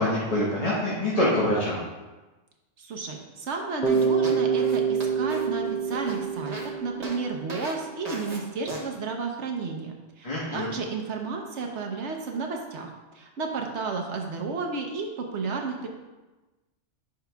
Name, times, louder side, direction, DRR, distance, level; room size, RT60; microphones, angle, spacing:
voice 1, 0.0-1.8 10.2-10.7, left 1 dB, 30° left, -7 dB, 1.2 m, -25 dB
voice 2, 2.8-12.9 13.1-15.9, right 4 dB, 65° right, 2 dB, 1.0 m, -32 dB
Bass guitar, 3.8-7.8, right 6 dB, 5° right, 0.4 m, -26 dB
sound 1, 3.9-6.7 7.0-7.2 7.5-7.7 8.1-8.4 8.7-8.8, right 2 dB, 35° right, 0.9 m, -37 dB
9.4 x 5.7 x 2.3 m, 1.2 s
omnidirectional pair, 1.3 m